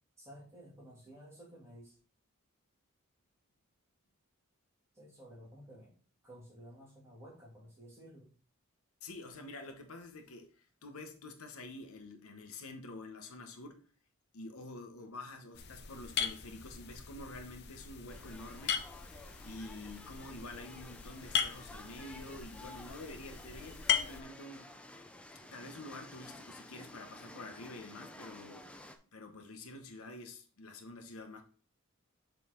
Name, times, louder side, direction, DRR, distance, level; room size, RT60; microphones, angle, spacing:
voice 1, 0.2-2.0 4.9-6.0 6.2-8.3, equal, 15° right, 2.6 m, -53 dB
voice 2, 9.0-13.9 14.3-18.8 19.4-24.8 25.4-28.7 29.1-31.4, left 2 dB, 80° left, 1.0 m, -48 dB
sound 1, 15.5-24.2, left 8 dB, 50° left, 0.6 m, -38 dB
sound 2, 18.1-29.0, left 1 dB, 5° left, 0.4 m, -52 dB
6.9 x 4.1 x 3.7 m
head